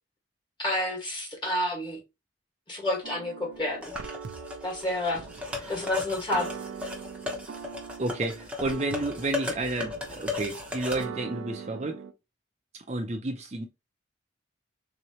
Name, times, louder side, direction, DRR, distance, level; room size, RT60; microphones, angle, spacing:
voice 1, 0.6-2.0 2.7-3.9 4.6-5.2 5.7-6.5, left 1 dB, 25° left, 1.5 m, -29 dB
sound 1, 3.0-12.1, right 6 dB, 85° right, 0.5 m, -42 dB
sound 2, 3.8-11.0, left 3 dB, 5° right, 0.8 m, -36 dB
voice 2, 8.0-12.0 12.9-13.7, right 2 dB, 35° right, 0.5 m, -31 dB
3.7 x 3.1 x 2.8 m
head